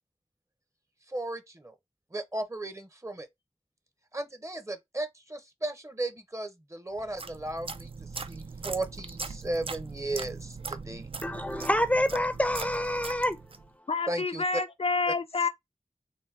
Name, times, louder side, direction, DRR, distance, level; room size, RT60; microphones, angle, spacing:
voice 1, 1.1-1.7 2.1-3.3 4.1-7.9 8.3-11.1 14.1-14.6, right 1 dB, 25° right, 0.8 m, -35 dB
sound 1, 7.0-13.7, right 4 dB, 50° right, 0.4 m, -40 dB
voice 2, 11.2-13.4, left 1 dB, 10° left, 0.5 m, -27 dB
voice 3, 13.9-15.5, left 4 dB, 60° left, 0.4 m, -28 dB
4.1 x 2.2 x 3.3 m
wide cardioid pair, 45°, 12 cm